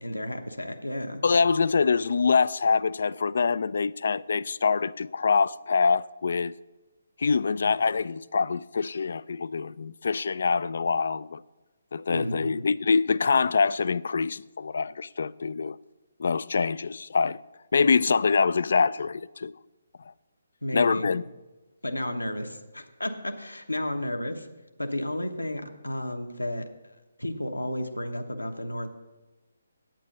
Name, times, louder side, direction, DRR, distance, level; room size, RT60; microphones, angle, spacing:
voice 1, 0.0-1.2 12.1-12.6 20.6-21.1 21.8-24.5 24.8-26.7 27.2-28.9, left 1 dB, 80° left, 1.1 m, -32 dB
voice 2, 1.2-6.5 7.2-11.4 11.9-15.8 16.2-17.4 17.7-19.5 20.7-21.2, left 5 dB, 55° left, 0.3 m, -25 dB
9.0 x 8.1 x 5.9 m
figure-of-eight pair, 140°, 0 cm